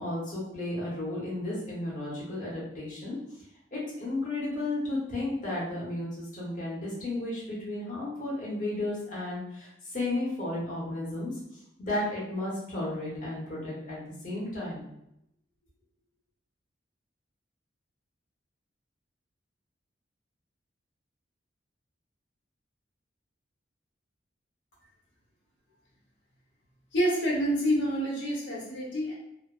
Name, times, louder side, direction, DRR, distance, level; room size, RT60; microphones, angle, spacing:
voice 1, 0.0-3.2 3.7-11.3 11.8-14.8, left 2 dB, 45° left, -6 dB, 1.0 m, -33 dB
voice 2, 26.9-29.1, equal, 70° left, -4 dB, 0.9 m, -27 dB
2.6 x 2.1 x 2.4 m, 0.80 s
head